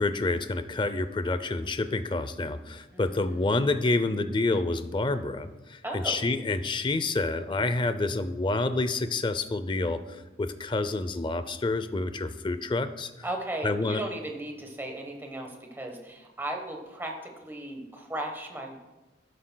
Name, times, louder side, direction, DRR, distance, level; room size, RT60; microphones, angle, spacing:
voice 1, 0.0-10.0 10.4-13.1 13.6-14.0, left 2 dB, 25° left, 11 dB, 0.4 m, -28 dB
voice 2, 2.9-3.7 5.8-6.2 13.2-18.8, right 1 dB, 10° right, 2 dB, 1.1 m, -36 dB
11.5 x 11.5 x 2.2 m, 1.1 s
head